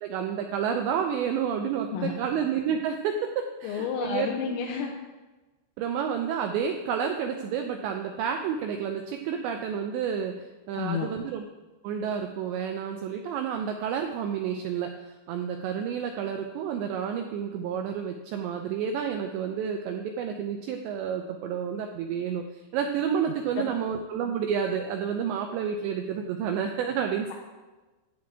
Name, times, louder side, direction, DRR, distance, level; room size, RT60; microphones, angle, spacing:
voice 1, 0.0-4.3 5.8-10.4 10.7-11.4 11.8-14.9 15.3-22.4 22.7-27.3, right 7 dB, 85° right, 4 dB, 2.5 m, -30 dB
voice 2, 3.6-5.0 10.8-11.1 23.3-23.6, left 7 dB, 90° left, 0 dB, 3.6 m, -31 dB
11.5 x 4.8 x 8.1 m, 1.2 s
omnidirectional pair, 5.8 m